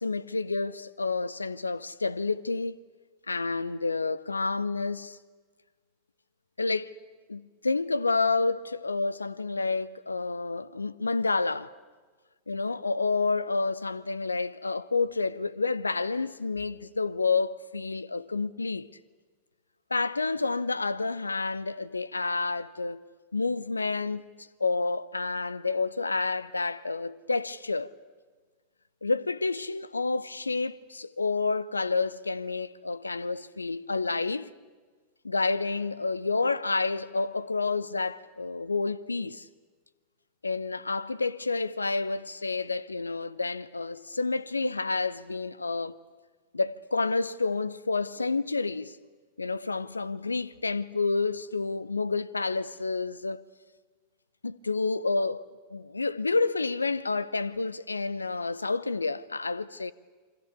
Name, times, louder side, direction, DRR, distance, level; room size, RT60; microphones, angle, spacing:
voice 1, 0.0-2.8 3.3-5.2 6.6-6.9 7.3-11.7 12.5-18.9 19.9-23.0 23.3-27.9 29.0-34.5 35.2-39.5 40.4-46.0 46.5-49.0 49.4-53.5 54.4-59.9, left 3 dB, 80° left, 0.8 m, -29 dB
28.0 x 25.0 x 8.3 m
figure-of-eight pair, 90°, 0 cm